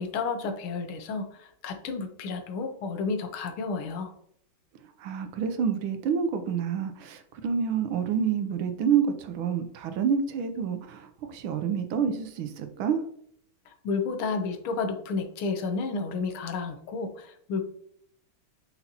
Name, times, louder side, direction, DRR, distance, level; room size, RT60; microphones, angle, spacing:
voice 1, 0.0-4.1 13.7-17.6, left 4 dB, 90° left, 6 dB, 1.7 m, -31 dB
voice 2, 5.0-13.0, right 7 dB, 85° right, 8 dB, 1.6 m, -28 dB
5.9 x 5.4 x 2.9 m, 0.67 s
omnidirectional pair, 2.2 m